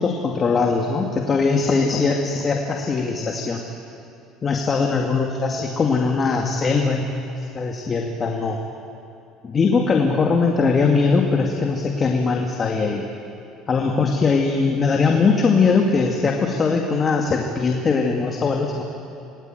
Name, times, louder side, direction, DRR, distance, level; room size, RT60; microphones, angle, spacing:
voice 1, 0.0-3.6 4.4-7.1 7.5-8.6 9.4-13.0 13.7-18.8, left 4 dB, 25° left, 2 dB, 2.2 m, -20 dB
27.5 x 20.5 x 9.2 m, 2.8 s
cardioid pair, 140°, 0 cm